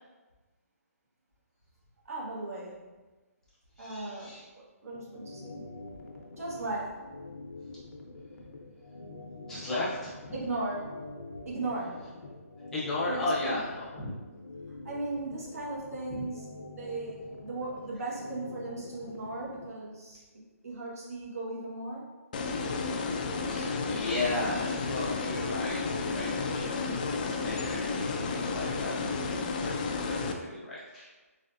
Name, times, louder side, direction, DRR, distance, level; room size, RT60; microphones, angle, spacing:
voice 1, 2.0-2.8 3.8-5.6 6.4-6.9 10.3-10.8 11.4-11.9 13.1-13.6 14.8-17.2 17.4-20.2 20.6-22.0, right 2 dB, 65° right, -4 dB, 1.4 m, -37 dB
voice 2, 3.8-4.4 9.5-10.1 12.7-14.1 16.1-16.2 23.5-27.0 27.2-28.9 29.4-31.1, left 2 dB, 5° left, -9 dB, 0.8 m, -35 dB
sound 1, 4.9-19.7, left 2 dB, 85° left, 0.8 m, -46 dB
sound 2, 22.3-30.3, left 4 dB, 30° left, 0.3 m, -32 dB
4.0 x 3.2 x 2.6 m, 1.2 s
hypercardioid pair, 165°, 8 cm